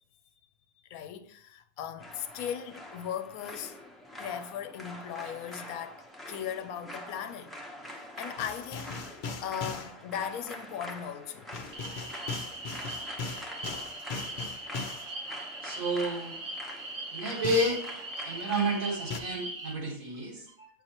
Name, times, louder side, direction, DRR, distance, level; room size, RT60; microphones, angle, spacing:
voice 1, 0.9-3.8 4.2-7.5 7.9-9.0 9.4-11.5, left 9 dB, 80° left, 1.0 m, -38 dB
sound 1, 2.0-19.1, left 1 dB, ahead, 0.7 m, -45 dB
sound 2, 8.4-9.9 11.5-15.1 17.4-17.8 19.1-19.2, left 4 dB, 50° left, 0.6 m, -38 dB
sound 3, 11.7-19.7, right 2 dB, 30° right, 0.7 m, -40 dB
voice 2, 15.6-16.4 17.1-17.8 18.2-20.7, right 1 dB, 70° right, 2.1 m, -30 dB
7.8 x 5.4 x 2.9 m
omnidirectional pair, 1.5 m